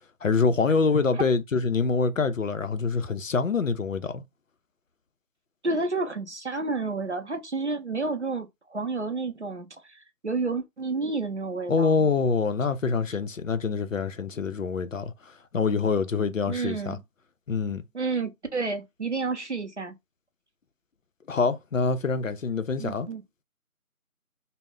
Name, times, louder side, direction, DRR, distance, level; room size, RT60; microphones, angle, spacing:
voice 1, 0.2-4.2 11.7-15.1 15.5-17.0 17.5-17.8 21.3-23.1, left 4 dB, 65° left, 0.5 m, -25 dB
voice 2, 5.6-12.1 16.5-17.0 17.9-19.9 22.8-23.2, right 3 dB, 55° right, 0.5 m, -30 dB
2.1 x 2.0 x 3.6 m
figure-of-eight pair, 180°, 43 cm